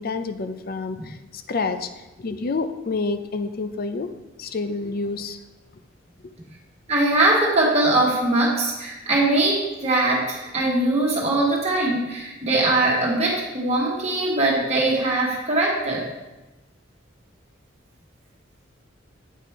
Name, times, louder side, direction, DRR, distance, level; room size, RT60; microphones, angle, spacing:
voice 1, 0.0-1.9 2.2-4.1 4.4-5.4, left 3 dB, 50° left, 9 dB, 0.5 m, -28 dB
voice 2, 6.9-16.0, right 2 dB, 35° right, -4 dB, 1.4 m, -21 dB
8.2 x 4.2 x 4.6 m, 1.0 s
head